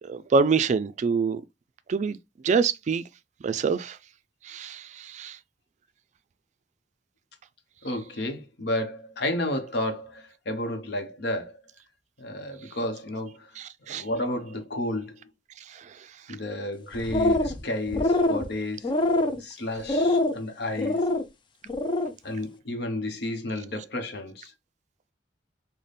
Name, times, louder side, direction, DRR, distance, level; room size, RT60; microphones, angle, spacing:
voice 1, 0.1-1.4 1.9-2.2 2.4-3.0 3.4-4.0 4.5-4.8 5.1-5.4 13.9-14.0, right 5 dB, 40° right, 0.3 m, -24 dB
voice 2, 7.8-11.6 12.2-13.6 13.9-15.2 16.3-18.9 19.3-21.1 22.2-24.5, left 1 dB, 65° left, 0.8 m, -31 dB
sound 1, 16.9-17.6 17.9-18.4 18.8-19.4 19.9-20.4 20.8-21.2 21.7-22.1, left 2 dB, 30° left, 0.4 m, -24 dB
4.0 x 2.1 x 3.2 m
head